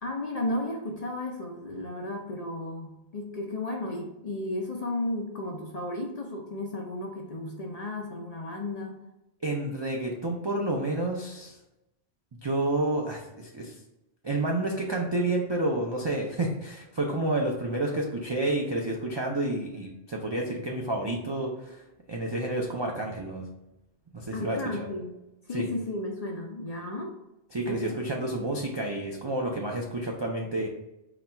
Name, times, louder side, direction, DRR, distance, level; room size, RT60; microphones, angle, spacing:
voice 1, 0.0-9.0 24.3-25.2 25.5-27.2 27.7-27.9, left 2 dB, 50° left, 1 dB, 0.5 m, -34 dB
voice 2, 9.4-11.6 12.4-13.8 14.2-23.5 24.1-24.9 25.5-25.7 27.5-30.7, right 2 dB, 45° right, -1 dB, 0.3 m, -30 dB
4.0 x 2.3 x 4.3 m, 0.94 s
omnidirectional pair, 1.1 m